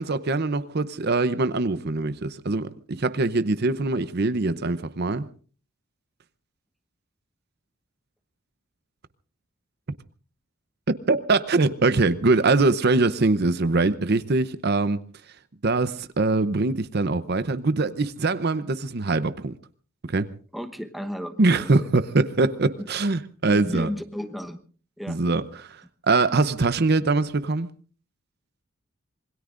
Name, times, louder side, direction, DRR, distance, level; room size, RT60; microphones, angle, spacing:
voice 1, 0.0-5.3 11.1-15.0 15.6-19.6 20.1-20.3 21.4-23.9 25.1-25.8 26.1-27.7, right 3 dB, 50° right, 0.7 m, -23 dB
voice 2, 20.5-21.9 22.8-22.9 23.5-24.6 25.0-25.2, equal, ahead, 1.1 m, -34 dB
26.5 x 21.5 x 2.5 m
head